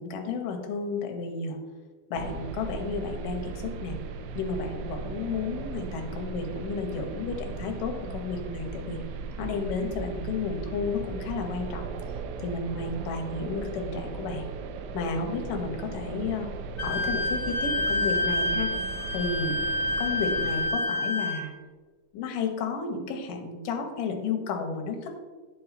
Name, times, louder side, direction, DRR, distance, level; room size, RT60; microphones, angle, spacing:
voice 1, 0.0-1.6 2.1-4.0 4.4-9.0 9.4-12.0 12.4-14.5 14.9-16.5 16.8-18.7 19.1-19.6 20.0-21.5 22.1-25.1, left 4 dB, 75° left, 3 dB, 2.5 m, -32 dB
sound 1, 2.1-20.7, right 5 dB, 85° right, 2.4 m, -37 dB
Wind instrument woodwind instrument, 16.8-21.4, left 2 dB, 20° left, 2.4 m, -28 dB
10.5 x 4.6 x 4.1 m, 1.4 s
omnidirectional pair, 4.2 m